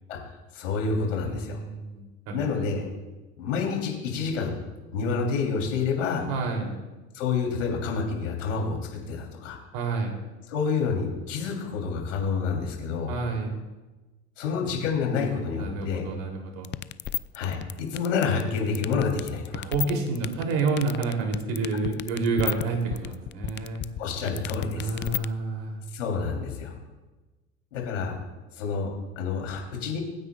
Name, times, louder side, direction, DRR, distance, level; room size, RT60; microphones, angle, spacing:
voice 1, 0.5-1.6 2.3-2.8 3.4-4.5 4.9-6.3 7.1-9.6 10.5-13.1 14.4-16.0 17.3-19.7 24.0-24.9 25.9-26.7 27.7-28.1 28.5-30.0, left 5 dB, 80° left, 0 dB, 3.4 m, -28 dB
voice 2, 1.2-2.8 6.3-6.7 9.7-10.1 13.1-13.5 15.6-16.7 19.6-23.8 24.7-25.8, right 4 dB, 65° right, 2 dB, 3.2 m, -29 dB
sound 1, 16.6-25.3, left 13 dB, 30° left, 0.5 m, -31 dB
24.0 x 9.6 x 2.4 m, 1.2 s
hypercardioid pair, 75°, 36 cm